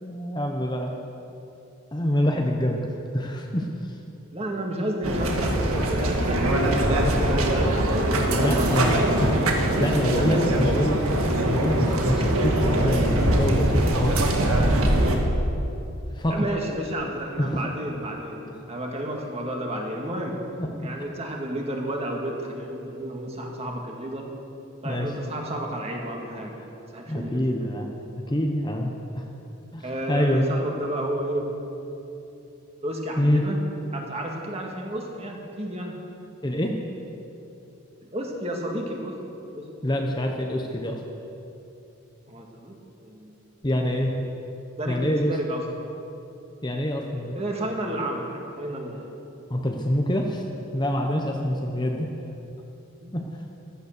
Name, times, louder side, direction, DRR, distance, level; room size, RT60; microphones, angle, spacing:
voice 1, 0.0-0.9 1.9-2.8 3.1-4.0 6.2-6.4 8.4-11.2 11.5-14.2 16.1-16.4 17.4-17.6 20.6-20.9 24.8-25.1 26.6-26.7 27.1-27.9 28.2-29.3 29.7-30.5 33.2-33.4 36.4-36.8 39.8-41.0 43.6-44.1 44.9-45.4 46.6-47.4 49.5-50.4 50.7-52.1 53.1-53.3, equal, 20° left, 1 dB, 0.9 m, -26 dB
voice 2, 4.3-9.2 9.7-10.5 10.8-10.9 16.3-18.4 18.7-20.4 20.8-24.3 24.8-26.5 26.9-27.4 27.8-28.0 29.8-31.5 32.8-33.7 33.9-35.9 38.0-39.2 39.5-39.7 42.3-42.7 43.0-43.4 44.8-45.6 47.3-49.1 53.0-53.1, right 1 dB, 25° right, 0 dB, 2.0 m, -31 dB
sound 1, 5.0-15.2, right 1 dB, 75° right, 1.9 m, -22 dB
15.0 x 13.0 x 6.7 m, 2.8 s
head